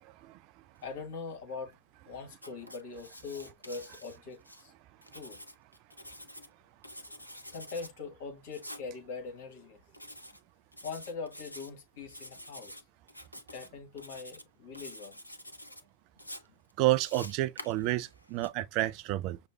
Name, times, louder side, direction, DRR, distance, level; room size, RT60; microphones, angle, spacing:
voice 1, 0.8-1.7 2.1-4.7 5.1-5.4 7.5-9.8 10.8-12.7 13.5-15.2, left 4 dB, 50° left, 1.5 m, -42 dB
Writing, 2.3-4.6 5.0-6.5 6.8-7.9 8.5-8.9 9.9-10.4 10.7-11.7 12.1-12.8 13.1-13.7 14.0-14.4 14.7-15.8 16.2-18.5, left 1 dB, 85° left, 0.5 m, -48 dB
voice 2, 16.8-19.4, right 16 dB, 40° right, 0.3 m, -29 dB
6.1 x 2.1 x 2.6 m
figure-of-eight pair, 90°, 0 cm